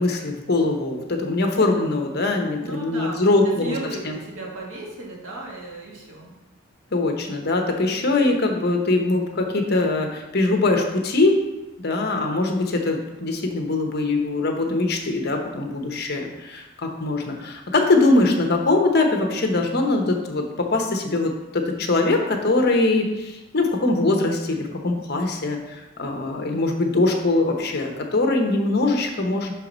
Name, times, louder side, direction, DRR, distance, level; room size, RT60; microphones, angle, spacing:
voice 1, 0.0-3.7 4.1-4.2 6.9-11.4 11.8-29.5, left 2 dB, 50° left, 3 dB, 0.9 m, -22 dB
voice 2, 2.5-6.4, right 2 dB, 80° right, -3 dB, 1.8 m, -35 dB
5.9 x 4.6 x 5.1 m, 1.0 s
head